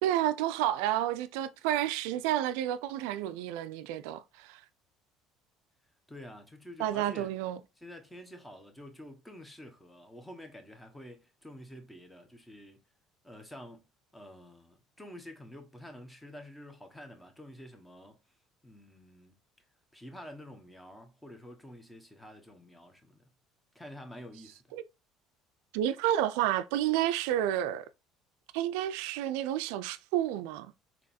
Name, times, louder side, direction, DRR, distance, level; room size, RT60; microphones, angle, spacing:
voice 1, 0.0-4.6 6.8-7.6 24.7-24.8 25.7-27.9 28.5-30.7, right 12 dB, 80° right, 0.3 m, -30 dB
voice 2, 6.1-7.3 7.8-12.8 13.2-13.8 14.1-18.2 18.6-19.3 19.9-23.2 23.7-24.6, left 1 dB, 10° left, 1.2 m, -48 dB
3.9 x 3.0 x 2.7 m
supercardioid pair, 85°, 0 cm